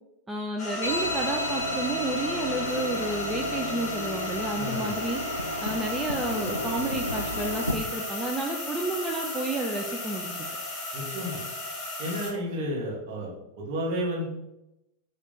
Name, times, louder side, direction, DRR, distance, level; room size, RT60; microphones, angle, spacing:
voice 1, 0.3-5.2 5.6-10.3, right 2 dB, 15° right, 0 dB, 0.4 m, -31 dB
sound 1, 0.6-12.3, left 2 dB, 20° left, 1.4 m, -35 dB
sound 2, 0.8-7.7, left 1 dB, 85° left, 0.3 m, -33 dB
voice 2, 4.6-4.9 10.9-11.4 12.0-14.2, equal, 45° right, -5 dB, 1.4 m, -32 dB
3.0 x 3.0 x 3.9 m, 0.90 s
figure-of-eight pair, 90°, 0 cm